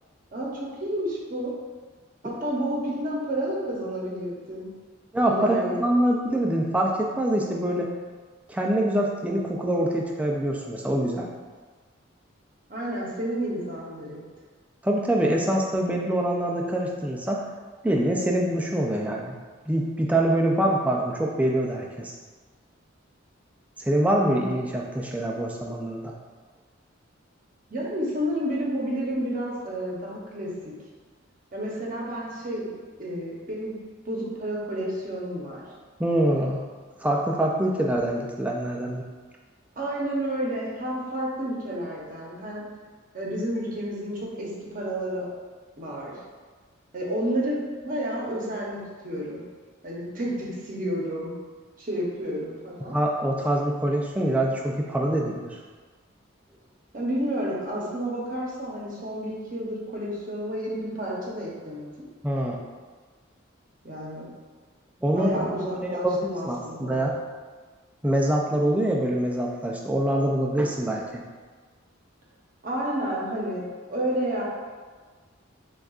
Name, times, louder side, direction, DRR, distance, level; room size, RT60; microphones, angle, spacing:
voice 1, 0.3-1.5 2.2-4.7 5.2-5.8 12.7-14.2 27.7-30.7 31.5-32.7 33.0-33.8 34.0-35.6 39.8-42.6 43.1-45.3 45.8-46.2 46.9-49.4 49.8-51.3 51.8-53.0 56.9-61.9 63.8-64.3 65.1-67.0 72.6-74.4, right 1 dB, 40° right, -4 dB, 0.8 m, -30 dB
voice 2, 5.1-7.9 8.5-11.3 14.8-17.4 17.8-19.3 19.7-22.1 23.8-26.1 36.0-36.6 37.0-39.0 52.9-55.6 62.2-62.5 65.0-65.5 65.9-67.1 68.0-71.2, right 1 dB, 5° right, -1 dB, 0.3 m, -25 dB
6.2 x 2.3 x 2.4 m, 1.5 s
head